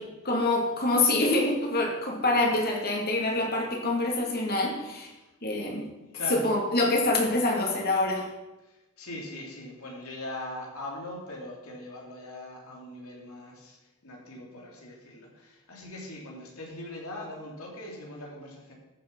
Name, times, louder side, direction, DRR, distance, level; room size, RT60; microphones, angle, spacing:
voice 1, 0.2-5.1 5.4-5.9 6.3-8.3, left 2 dB, 45° left, 0 dB, 2.6 m, -26 dB
voice 2, 6.1-6.5 8.6-13.8 14.0-18.7, left 1 dB, 80° left, -1 dB, 3.2 m, -41 dB
13.5 x 7.2 x 5.6 m, 1.1 s
head